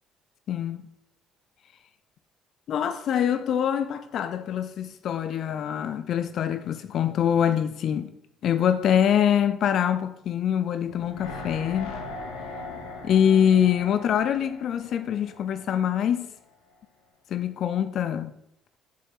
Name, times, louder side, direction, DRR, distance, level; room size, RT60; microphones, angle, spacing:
voice 1, 0.5-0.8 2.7-8.1 8.4-12.0 13.0-16.3 17.3-18.3, left 9 dB, 55° left, 0.3 m, -24 dB
sound 1, 10.9-16.0 16.3-16.4, left 3 dB, 75° left, 1.1 m, -40 dB
7.5 x 7.3 x 2.4 m
figure-of-eight pair, 50°, 0 cm